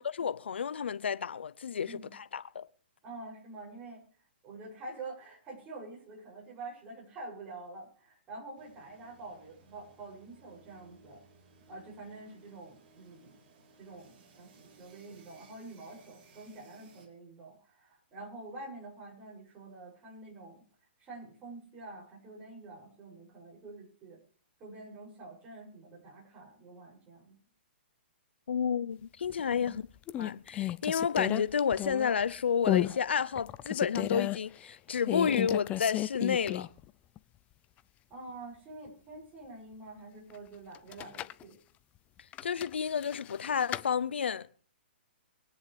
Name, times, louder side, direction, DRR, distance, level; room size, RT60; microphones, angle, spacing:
voice 1, 0.0-2.7 28.5-29.8 30.2-36.7 42.4-44.5, left 7 dB, 75° left, 0.7 m, -31 dB
voice 2, 1.8-2.1 3.0-4.0 4.4-11.2 11.7-13.4 13.8-20.6 21.0-24.2 24.6-27.4 29.4-29.8 38.1-41.6, right 2 dB, 25° right, 7.0 m, -47 dB
sound 1, 8.6-17.1, right 3 dB, 45° right, 4.0 m, -60 dB
sound 2, 29.3-29.7 30.1-32.2 32.6-33.0 33.4-34.4 35.1-36.8 37.2-37.3 40.7-41.4 42.3-43.9, left 13 dB, 20° left, 0.5 m, -33 dB
23.5 x 9.9 x 3.4 m
hypercardioid pair, 135°, 6 cm